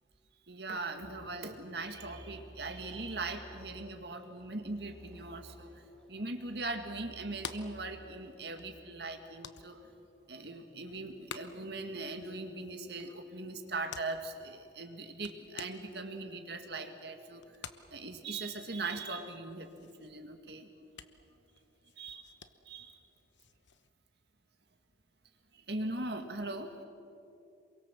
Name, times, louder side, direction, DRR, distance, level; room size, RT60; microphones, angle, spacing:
voice 1, 0.5-5.7 6.1-9.8 10.3-17.4 17.9-20.7 22.0-22.3 22.7-22.9 25.5-26.7, right 2 dB, 60° right, 6 dB, 2.1 m, -40 dB
sound 1, 1.0-8.6, right 1 dB, 5° left, 3.7 m, -54 dB
sound 2, 7.1-23.9, left 6 dB, 75° left, 1.1 m, -52 dB
27.5 x 23.0 x 7.5 m, 2.7 s
head